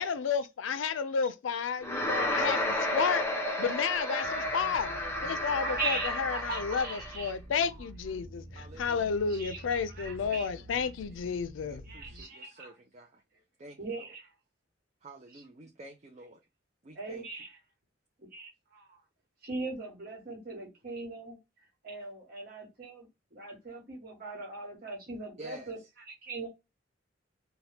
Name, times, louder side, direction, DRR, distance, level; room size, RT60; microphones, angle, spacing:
voice 1, 0.0-3.3 3.6-11.8, left 6 dB, 90° left, 0.4 m, -32 dB
sound 1, 1.8-7.2, left 1 dB, 15° left, 0.6 m, -32 dB
sound 2, 4.2-12.2, right 1 dB, 85° right, 0.9 m, -48 dB
voice 2, 5.6-7.7 9.3-10.5 11.8-12.7 13.8-14.3 15.3-15.4 16.9-17.6 18.3-19.0 19.4-21.4 21.8-25.8 26.1-26.5, right 3 dB, 50° right, 1.2 m, -40 dB
voice 3, 8.5-9.1 10.3-10.4 10.7-10.9 11.6-13.2 13.6-14.1 15.0-16.4 16.8-17.2 25.4-25.7, right 1 dB, 35° right, 0.4 m, -49 dB
2.8 x 2.2 x 3.2 m
head